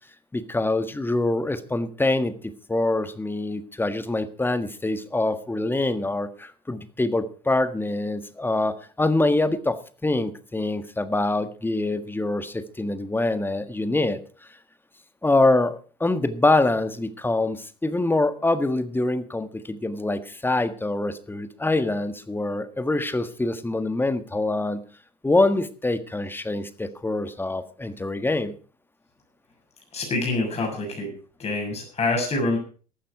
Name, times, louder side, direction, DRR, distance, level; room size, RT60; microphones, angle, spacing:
voice 1, 0.3-14.2 15.2-24.8 25.2-28.5, left 2 dB, 10° left, 11 dB, 1.5 m, -25 dB
voice 2, 29.9-31.1 31.4-32.6, left 2 dB, 30° left, 1 dB, 7.0 m, -26 dB
15.0 x 12.0 x 4.7 m, 0.39 s
figure-of-eight pair, 70°, 20 cm